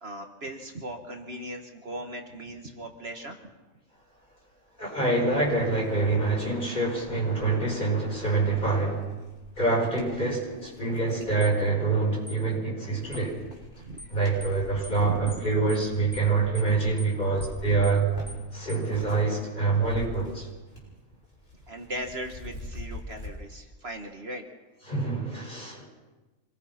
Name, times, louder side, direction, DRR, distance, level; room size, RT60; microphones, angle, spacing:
voice 1, 0.0-3.4 13.8-14.2 15.0-15.4 21.7-24.4, right 1 dB, 50° right, 4 dB, 1.8 m, -38 dB
sound 1, 4.7-4.8 5.2-11.4 12.0-12.6 12.9-19.3 19.6-21.0 21.2-23.3, left 1 dB, 55° left, 6.8 m, -45 dB
voice 2, 4.8-9.2 9.6-13.4 14.1-18.1 18.5-20.5 24.9-25.9, right 3 dB, 35° left, -1 dB, 5.8 m, -26 dB
sound 2, 11.4-11.6 12.3-12.4 13.1-13.3 14.0-14.1 14.4-14.6 14.8-15.0 15.3-15.4 15.7-15.9 16.1-16.3 16.6-16.7 17.0-17.1 17.4-17.6 17.8-18.0 18.3-18.4 18.7-18.9, left 1 dB, 5° left, 1.1 m, -44 dB
26.5 x 19.5 x 5.9 m, 1.2 s
omnidirectional pair, 1.4 m